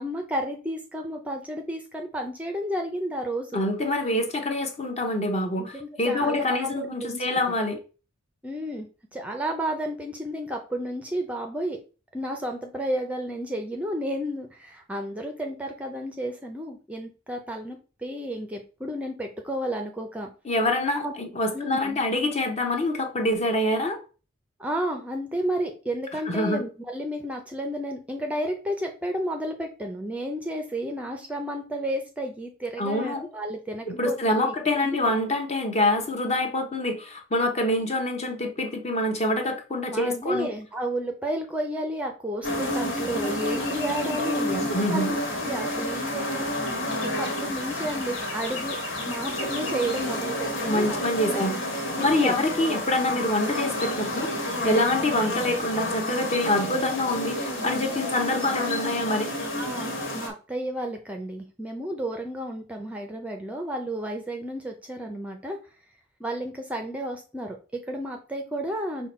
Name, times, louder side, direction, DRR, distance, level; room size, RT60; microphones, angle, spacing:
voice 1, 0.0-3.6 5.6-7.2 8.4-11.8 12.1-20.3 21.0-21.1 21.5-22.0 24.6-34.5 34.8-35.0 39.9-48.8 49.1-51.4 52.0-52.3 59.5-65.6 66.2-69.1, right 1 dB, 5° right, 0.4 m, -32 dB
voice 2, 3.5-7.8 20.4-24.0 26.3-26.6 32.8-33.3 33.9-40.5 44.5-45.2 50.6-51.6 52.0-59.3, left 1 dB, 35° left, 0.7 m, -26 dB
sound 1, 42.4-60.3, left 1 dB, 85° left, 1.3 m, -30 dB
5.6 x 2.2 x 4.2 m
head